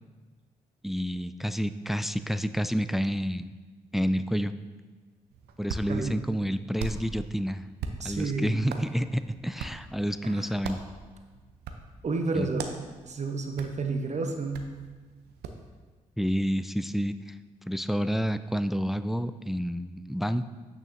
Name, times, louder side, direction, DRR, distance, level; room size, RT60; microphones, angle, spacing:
voice 1, 0.8-3.5 3.9-4.5 5.6-7.6 8.0-10.8 12.3-12.5 16.2-17.3 17.7-20.5, equal, ahead, 12 dB, 0.3 m, -29 dB
Hands, 5.3-15.7, right 5 dB, 70° right, 0.6 m, -42 dB
voice 2, 8.0-8.6 10.2-10.5 12.0-12.6 13.0-14.7, right 3 dB, 40° right, 4 dB, 1.0 m, -30 dB
9.0 x 6.2 x 2.7 m, 1.4 s
hypercardioid pair, 40°, 17 cm